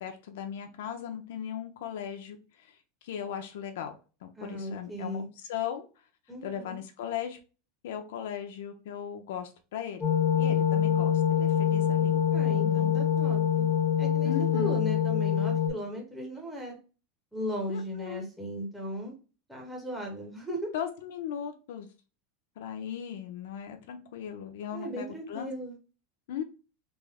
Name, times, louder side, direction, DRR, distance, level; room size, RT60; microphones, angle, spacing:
voice 1, 0.0-2.8 3.0-3.9 4.2-5.9 6.4-7.4 7.8-10.0 10.3-13.0 14.2-14.7 17.7-18.3 20.7-21.9 22.6-25.5 26.3-26.4, left 9 dB, 80° left, 5 dB, 0.7 m, -37 dB
voice 2, 4.4-5.3 6.3-6.8 12.3-13.7 14.0-16.8 17.3-19.1 19.5-20.7 24.7-25.7, equal, ahead, -2 dB, 0.9 m, -37 dB
sound 1, 10.0-15.7, left 9 dB, 20° left, 1.0 m, -25 dB
3.5 x 2.1 x 3.4 m, 0.33 s
supercardioid pair, 155°, 0 cm